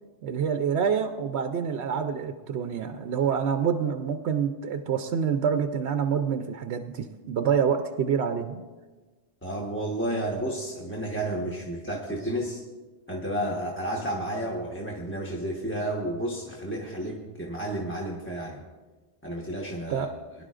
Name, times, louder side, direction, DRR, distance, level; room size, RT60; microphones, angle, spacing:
voice 1, 0.2-8.6 19.9-20.1, right 7 dB, 70° right, 7 dB, 0.8 m, -27 dB
voice 2, 9.4-12.6 13.1-18.6 19.2-20.1, right 1 dB, 10° left, -3 dB, 1.1 m, -31 dB
21.5 x 11.0 x 2.5 m, 1.3 s
omnidirectional pair, 1.2 m